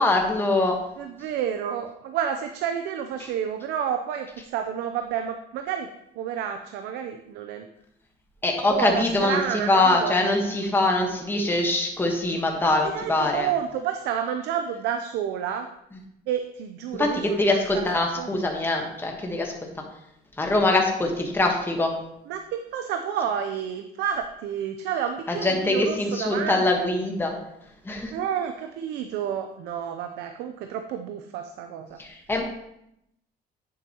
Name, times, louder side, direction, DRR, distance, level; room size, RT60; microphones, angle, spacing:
voice 1, 0.0-0.8 8.4-9.4 9.7-13.5 17.0-19.5 20.4-21.9 25.4-27.3 27.8-28.1 32.0-32.4, left 2 dB, 15° left, 1 dB, 1.3 m, -23 dB
voice 2, 1.0-5.9 6.2-7.7 8.6-10.2 12.6-15.7 16.3-18.3 22.3-26.9 28.1-32.0, right 8 dB, 85° right, 6 dB, 0.6 m, -30 dB
9.0 x 7.4 x 2.9 m, 0.79 s
cardioid pair, 110°, 17 cm